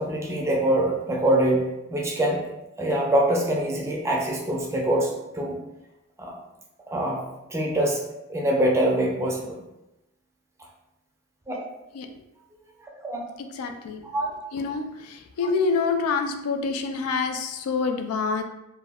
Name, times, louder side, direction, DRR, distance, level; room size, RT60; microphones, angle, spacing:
voice 1, 0.0-1.6 1.9-2.4 2.8-5.5 6.2-6.3 6.9-7.2 7.5-8.0 8.3-9.6 11.5-11.6 13.0-13.2 14.1-14.3, right 1 dB, 15° right, -1 dB, 0.4 m, -24 dB
voice 2, 13.6-14.0 14.5-18.4, left 4 dB, 80° left, 7 dB, 0.3 m, -26 dB
2.2 x 2.1 x 3.3 m, 0.93 s
head